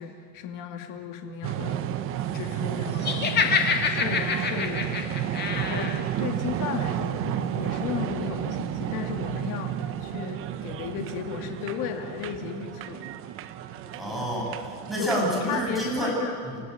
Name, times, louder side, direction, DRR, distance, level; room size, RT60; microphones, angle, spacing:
voice 1, 0.0-1.9 2.3-9.8 10.0-13.1 15.0-16.4, left 7 dB, 40° left, 4 dB, 2.5 m, -35 dB
sound 1, 1.4-16.0, right 11 dB, 25° right, 0.8 m, -32 dB
Laughter, 3.0-6.0, left 5 dB, 20° left, 1.9 m, -26 dB
voice 2, 14.0-16.1 16.4-16.6, equal, ahead, -4 dB, 6.8 m, -28 dB
28.5 x 16.0 x 9.4 m, 2.1 s
supercardioid pair, 170°, 48 cm